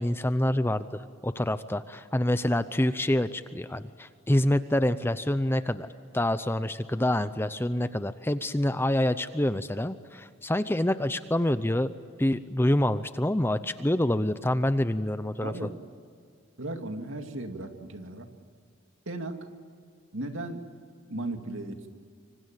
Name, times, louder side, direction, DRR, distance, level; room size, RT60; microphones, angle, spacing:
voice 1, 0.0-5.9 6.1-15.7, left 1 dB, 10° left, 12 dB, 0.6 m, -27 dB
voice 2, 15.4-15.7 16.6-18.3 19.1-19.4 20.1-20.6 21.1-21.9, right 2 dB, 65° right, 5 dB, 2.4 m, -36 dB
25.5 x 25.5 x 9.0 m, 2.2 s
head